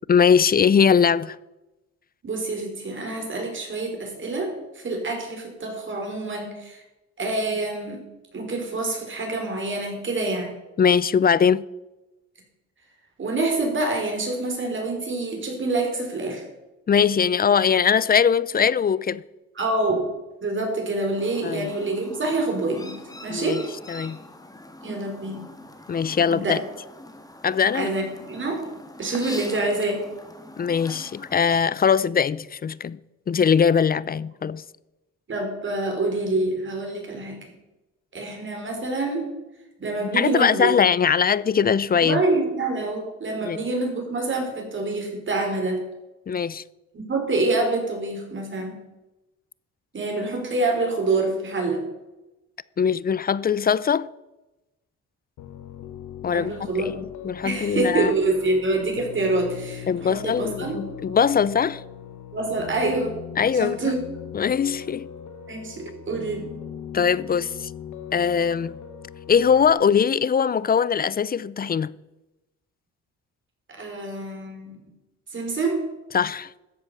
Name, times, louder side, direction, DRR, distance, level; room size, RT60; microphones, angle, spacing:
voice 1, 0.1-1.4 10.8-11.6 16.9-19.2 21.4-21.7 23.3-23.6 23.9-24.2 25.9-26.6 27.4-28.0 30.6-33.0 33.3-34.6 40.0-42.2 43.4-43.6 46.3-46.6 52.8-54.1 56.2-56.5 56.8-58.1 59.9-61.8 63.4-63.9 64.3-65.1 66.9-67.7 68.1-68.7 69.3-71.9 76.1-76.5, left 7 dB, 30° left, 0.5 m, -21 dB
voice 2, 2.2-6.8 7.2-8.0 8.3-10.5 13.2-16.4 19.6-20.0 20.4-23.0 23.2-23.6 24.8-25.4 26.3-26.5 27.7-28.6 29.0-30.0 35.3-37.4 38.1-39.3 39.8-40.7 42.0-45.8 46.9-48.8 49.9-51.8 56.3-56.9 57.4-60.7 62.3-63.1 63.5-64.0 65.5-66.5 73.8-74.8 75.3-75.8, right 2 dB, 40° right, 4.4 m, -26 dB
Chirp tweet, 21.2-31.6, left 1 dB, 10° left, 1.8 m, -42 dB
Piano, 55.4-69.7, left 8 dB, 85° left, 1.2 m, -40 dB
13.5 x 8.1 x 6.7 m
cardioid pair, 90°, 30 cm